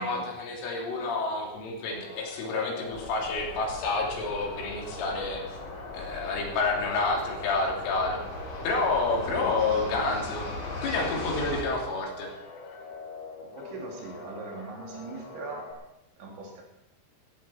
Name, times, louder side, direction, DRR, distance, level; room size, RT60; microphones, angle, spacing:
voice 1, 0.0-5.6 5.9-8.2 8.6-10.5 10.8-12.3, left 3 dB, 85° left, -1 dB, 5.4 m, -29 dB
sound 1, 1.9-15.7, left 3 dB, 65° left, 4.2 m, -44 dB
sound 2, 2.9-11.6, left 2 dB, 35° left, 2.2 m, -39 dB
voice 2, 13.4-15.7 16.2-16.6, right 3 dB, 70° right, -1 dB, 4.9 m, -40 dB
15.5 x 15.0 x 4.3 m, 0.89 s
omnidirectional pair, 5.5 m